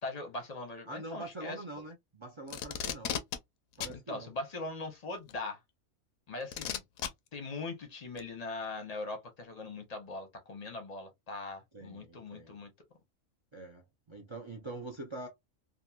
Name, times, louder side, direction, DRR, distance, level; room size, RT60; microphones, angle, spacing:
voice 1, 0.0-1.6 4.1-5.6 6.3-6.8 7.3-12.7, left 3 dB, 40° left, 0.7 m, -40 dB
voice 2, 0.9-3.2 3.8-4.3 11.7-12.6 13.5-15.3, right 2 dB, 50° right, 0.3 m, -44 dB
Packing tape duct tape, 2.5-3.4 3.8-4.0 5.3-5.4 6.5-7.1 8.2-8.3, left 9 dB, 90° left, 1.0 m, -35 dB
2.8 x 2.4 x 2.2 m
omnidirectional pair, 1.4 m